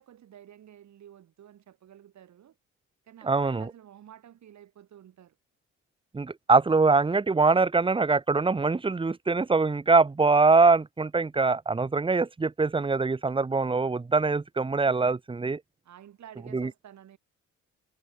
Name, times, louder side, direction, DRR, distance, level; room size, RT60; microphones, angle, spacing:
voice 1, 0.0-2.6 3.0-5.4 15.8-17.2, right 10 dB, 65° right, 6.3 m, -51 dB
voice 2, 3.2-3.7 6.1-15.6 16.5-16.7, right 4 dB, 15° right, 0.9 m, -23 dB
cardioid pair, 90°, 30 cm